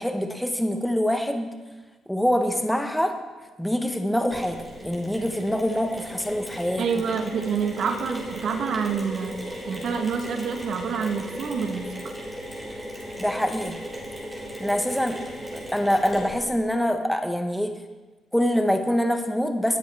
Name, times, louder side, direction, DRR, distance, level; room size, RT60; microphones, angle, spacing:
voice 1, 0.0-1.5 2.1-3.2 3.6-6.9 13.2-13.8 14.6-15.2 15.5-17.8 18.3-19.8, equal, 5° left, 6 dB, 1.2 m, -25 dB
Mechanisms, 4.3-16.6, equal, 15° right, 4.5 m, -36 dB
voice 2, 6.8-9.4 9.7-12.1, right 6 dB, 65° right, 6 dB, 1.3 m, -27 dB
19.0 x 10.0 x 3.5 m, 1.2 s
cardioid pair, 90°, 0 cm